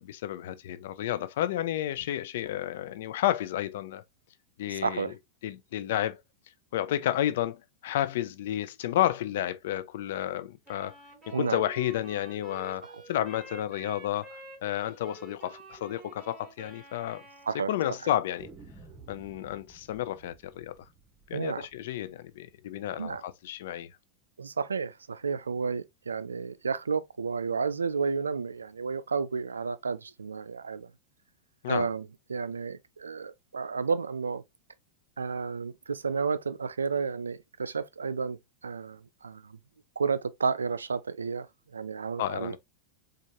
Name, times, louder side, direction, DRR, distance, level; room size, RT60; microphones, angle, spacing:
voice 1, 0.0-4.0 4.6-5.1 5.4-6.2 6.7-10.9 11.3-17.2 17.7-18.5 19.1-20.7 21.3-23.9 31.6-31.9 42.2-42.6, left 12 dB, 65° left, 0.5 m, -31 dB
voice 2, 4.7-5.1 11.3-11.6 12.8-13.0 17.5-17.7 18.0-18.1 21.3-21.7 23.0-23.2 24.4-30.9 31.7-34.4 35.2-39.6 40.0-41.5 41.7-42.6, right 5 dB, 90° right, 0.3 m, -32 dB
Wind instrument woodwind instrument, 10.6-17.6, right 3 dB, 5° right, 2.7 m, -49 dB
sound 1, 15.6-15.7 16.0-16.1 16.4-16.5 17.1-17.7 18.4-23.2, right 4 dB, 25° right, 1.4 m, -54 dB
4.5 x 2.4 x 2.7 m
hypercardioid pair, 100°, 0 cm